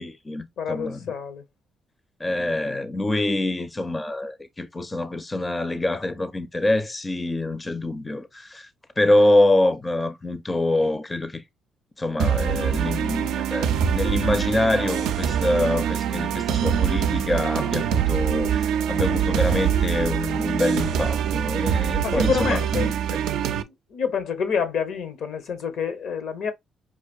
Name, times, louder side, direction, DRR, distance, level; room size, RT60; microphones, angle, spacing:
voice 1, 0.0-1.1 2.2-8.7 9.0-11.4 12.0-23.2, left 1 dB, 20° left, 0.4 m, -25 dB
voice 2, 0.6-1.4 22.0-22.9 23.7-26.5, left 6 dB, 75° left, 0.8 m, -28 dB
sound 1, 12.2-23.6, right 8 dB, 90° right, 0.4 m, -24 dB
4.8 x 2.5 x 2.3 m
cardioid pair, 90°, 0 cm